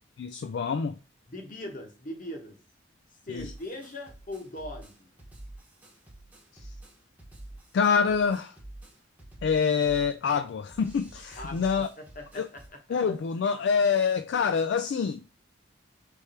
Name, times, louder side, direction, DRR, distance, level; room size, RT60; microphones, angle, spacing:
voice 1, 0.2-1.0 3.3-3.5 6.5-6.7 7.7-8.6 9.4-11.9 12.3-12.5 12.9-15.2, left 6 dB, 60° left, 0.3 m, -26 dB
voice 2, 1.3-2.6 3.2-5.1 11.4-11.7 12.0-12.8, left 1 dB, 45° left, 1.1 m, -40 dB
sound 1, 3.4-12.7, right 1 dB, 10° right, 1.0 m, -48 dB
3.5 x 3.2 x 4.2 m
head